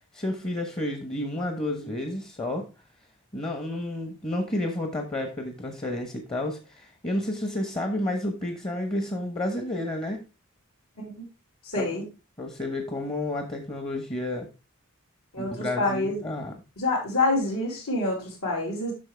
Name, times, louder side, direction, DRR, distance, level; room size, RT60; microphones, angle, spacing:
voice 1, 0.1-2.7 3.3-10.2 11.8-11.9 12.4-14.5 15.4-16.5, left 1 dB, 25° left, 5 dB, 1.1 m, -31 dB
voice 2, 11.6-12.0 15.3-16.2 16.8-18.9, left 2 dB, 70° left, -9 dB, 3.9 m, -27 dB
8.9 x 6.2 x 3.4 m, 0.28 s
head